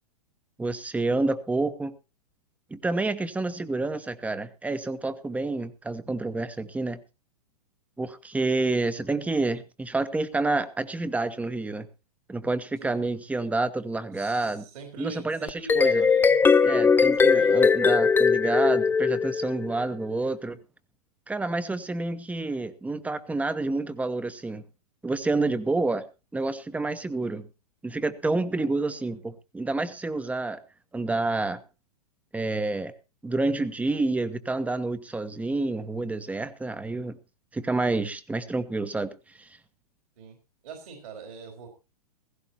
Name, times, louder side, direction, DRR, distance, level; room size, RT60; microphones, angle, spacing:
voice 1, 0.6-1.9 2.7-7.0 8.0-11.9 12.3-14.7 15.0-16.0 16.6-20.6 21.3-24.6 25.0-26.0 26.3-27.5 27.8-30.6 30.9-31.6 32.3-32.9 33.2-37.2 37.5-39.1 39.4-39.5, right 2 dB, 5° right, 13 dB, 1.0 m, -28 dB
voice 2, 12.8-13.1 14.1-16.4 17.2-17.8 40.2-40.4 40.6-41.7, right 5 dB, 65° right, 3 dB, 4.4 m, -42 dB
sound 1, 15.5-19.8, left 5 dB, 10° left, 0.8 m, -20 dB
16.5 x 16.0 x 2.9 m, 0.30 s
hypercardioid pair, 110°, 20 cm